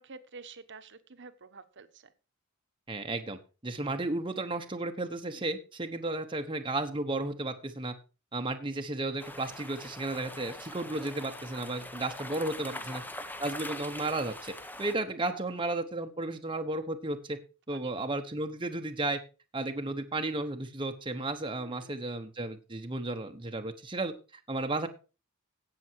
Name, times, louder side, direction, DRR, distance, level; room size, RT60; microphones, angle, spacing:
voice 1, 0.0-2.1 5.3-5.5 10.6-10.7 12.7-13.0 15.3-15.4 17.7-17.9 21.6-21.9, right 4 dB, 60° right, 11 dB, 1.2 m, -50 dB
voice 2, 2.9-3.4 3.6-7.9 8.3-13.0 13.4-14.5 14.8-17.4 17.7-19.2 19.5-24.1 24.5-24.9, right 2 dB, 25° right, 5 dB, 1.1 m, -33 dB
sound 1, 9.2-14.9, left 1 dB, 10° left, 1.1 m, -43 dB
16.5 x 7.0 x 4.6 m, 0.33 s
head